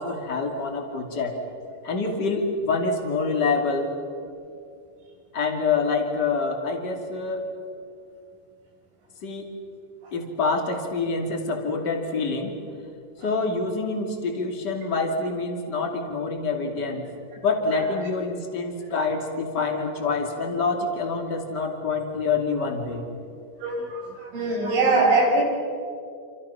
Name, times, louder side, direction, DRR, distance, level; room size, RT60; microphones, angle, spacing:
voice 1, 0.0-1.4 1.8-3.9 5.3-7.5 9.2-9.5 10.1-12.5 13.2-17.1 17.4-23.1, left 4 dB, 30° left, 2 dB, 2.2 m, -26 dB
voice 2, 23.6-25.4, right 3 dB, 85° right, -1 dB, 8.4 m, -22 dB
28.5 x 28.0 x 5.8 m, 2.4 s
omnidirectional pair, 5.6 m